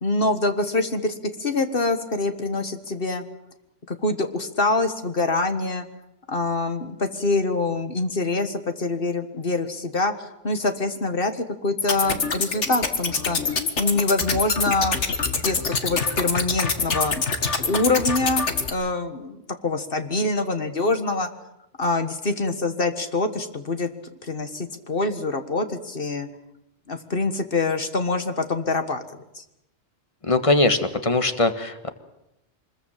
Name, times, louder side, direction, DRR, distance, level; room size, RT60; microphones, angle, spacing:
voice 1, 0.0-3.2 3.9-5.9 6.3-15.0 15.3-17.2 17.7-21.3 21.8-23.9 24.2-26.3 26.9-29.0 29.4-29.5, left 2 dB, 50° left, 8 dB, 1.8 m, -25 dB
sound 1, 11.8-18.7, left 4 dB, 70° left, 2.0 m, -25 dB
voice 2, 30.2-31.9, left 2 dB, 25° left, 9 dB, 1.7 m, -21 dB
24.5 x 21.5 x 7.5 m, 0.84 s
omnidirectional pair, 1.2 m